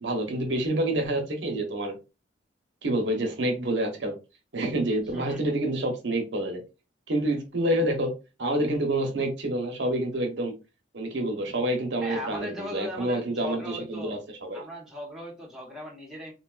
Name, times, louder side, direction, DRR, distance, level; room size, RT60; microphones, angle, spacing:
voice 1, 0.0-1.9 2.8-4.1 4.5-6.6 7.1-8.1 8.4-10.5 10.9-14.6, right 1 dB, 70° right, 3 dB, 0.8 m, -28 dB
voice 2, 5.1-5.5 12.0-14.2 14.5-16.3, left 1 dB, 5° right, -3 dB, 0.9 m, -38 dB
3.6 x 2.3 x 2.3 m, 0.29 s
head